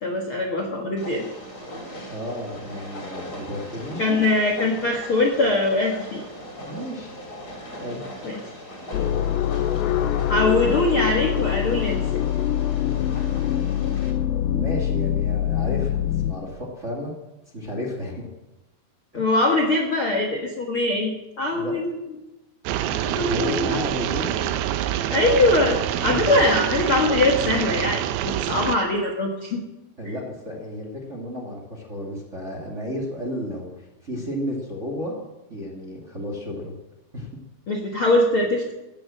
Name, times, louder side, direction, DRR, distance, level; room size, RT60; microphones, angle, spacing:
voice 1, 0.0-1.3 4.0-6.2 8.2-8.4 10.3-12.0 19.1-21.1 21.4-22.0 23.0-23.8 25.1-29.6 37.7-38.7, left 2 dB, 50° left, 0 dB, 1.6 m, -22 dB
Train, 1.0-14.1, equal, 25° left, 3.9 m, -39 dB
voice 2, 2.1-4.2 6.6-7.1 7.8-8.0 14.5-17.1 17.5-18.2 19.1-19.4 21.5-21.9 23.3-24.4 26.1-26.2 30.0-35.2 35.5-36.7 37.1-37.4, equal, 25° right, 0 dB, 1.9 m, -32 dB
sound 1, 8.9-16.3, left 11 dB, 75° left, 2.4 m, -24 dB
sound 2, 22.7-28.8, right 11 dB, 80° right, 2.6 m, -26 dB
15.5 x 10.5 x 7.5 m, 1.0 s
omnidirectional pair, 4.5 m